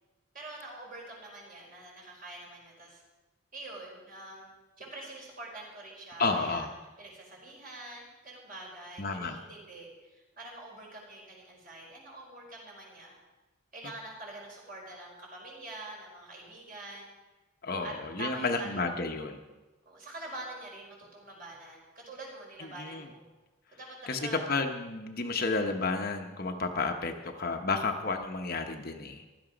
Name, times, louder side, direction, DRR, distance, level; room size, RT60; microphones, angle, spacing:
voice 1, 0.3-3.0 3.5-4.5 4.8-6.7 7.0-13.2 13.7-17.1 17.8-17.9 18.2-19.3 19.8-23.2 23.7-24.4 25.2-25.6, right 2 dB, 40° right, -2 dB, 4.6 m, -45 dB
voice 2, 6.2-6.7 9.0-9.4 17.6-19.4 22.6-23.1 24.1-29.2, left 3 dB, 45° left, 4 dB, 1.0 m, -31 dB
15.5 x 12.0 x 5.1 m, 1.2 s
head